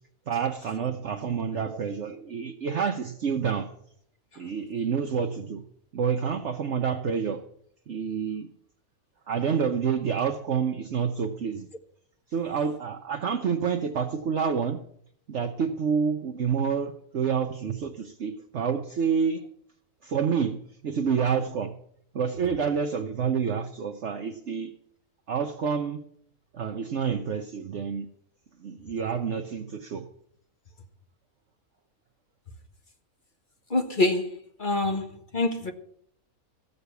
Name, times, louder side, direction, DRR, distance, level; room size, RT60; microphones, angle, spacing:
voice 1, 0.3-3.7 4.4-5.6 5.9-7.4 7.9-8.5 9.3-11.7 12.3-14.8 15.3-19.4 20.0-21.7 22.1-24.7 25.3-26.0 26.5-28.1 28.6-30.1, right 6 dB, 55° right, 1.1 m, -28 dB
voice 2, 33.7-34.3 34.6-35.7, left 2 dB, 35° left, 1.5 m, -25 dB
15.0 x 6.8 x 8.2 m
omnidirectional pair, 1.5 m